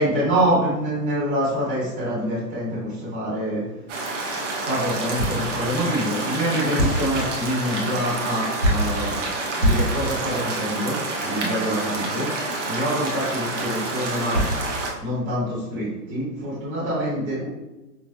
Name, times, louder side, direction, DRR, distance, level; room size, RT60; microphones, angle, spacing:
voice 1, 0.0-3.6 4.6-9.1 9.6-12.3 12.6-14.4 15.0-17.5, equal, 10° right, -13 dB, 0.9 m, -25 dB
sound 1, 3.9-14.9, right 2 dB, 45° right, 0.7 m, -28 dB
sound 2, 5.2-5.5 6.6-7.2 8.6-9.0 9.6-10.0 14.0-14.1 14.3-14.7, equal, 20° left, 0.6 m, -22 dB
4.9 x 2.1 x 2.2 m, 1.0 s
hypercardioid pair, 165°, 50 cm